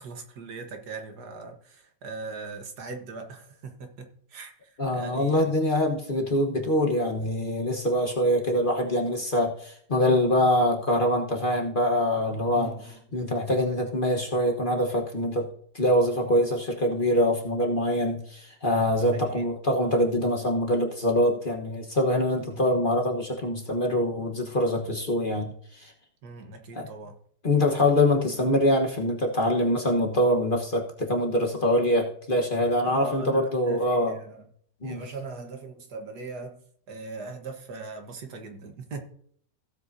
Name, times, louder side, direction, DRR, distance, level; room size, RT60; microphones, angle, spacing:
voice 1, 0.0-5.6 8.0-8.2 12.5-13.0 19.1-19.5 22.3-22.8 26.2-27.2 32.8-34.4 34.8-36.6 36.9-39.0, right 4 dB, 70° right, 1.8 m, -40 dB
voice 2, 4.8-15.5 15.7-25.9 26.7-26.9 27.4-34.1 34.8-35.0, left 1 dB, 35° left, 1.3 m, -24 dB
16.0 x 7.8 x 2.7 m
omnidirectional pair, 1.8 m